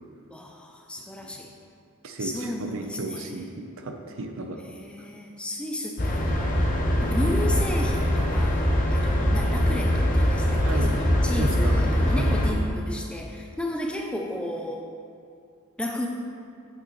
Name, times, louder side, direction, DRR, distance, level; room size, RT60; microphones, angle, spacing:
voice 1, 0.3-1.5 2.2-3.3 4.7-6.7 7.0-14.8 15.8-16.1, left 1 dB, 5° left, 1 dB, 0.3 m, -33 dB
voice 2, 2.0-4.6 10.6-11.0 11.4-12.4, right 2 dB, 60° right, 4 dB, 0.6 m, -33 dB
sound 1, 6.0-12.5, equal, 40° left, 0.8 m, -23 dB
8.2 x 5.6 x 3.0 m, 2.5 s
head